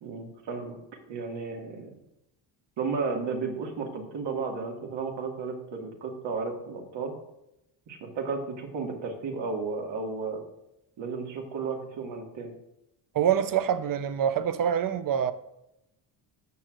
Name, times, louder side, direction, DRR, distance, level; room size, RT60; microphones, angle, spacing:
voice 1, 0.0-0.8 1.1-1.9 2.8-7.1 7.9-10.4 11.0-12.5, right 4 dB, 65° right, 2.1 m, -33 dB
voice 2, 13.1-15.3, right 9 dB, 45° right, 0.7 m, -25 dB
15.0 x 6.2 x 2.5 m
supercardioid pair, 85°, 48 cm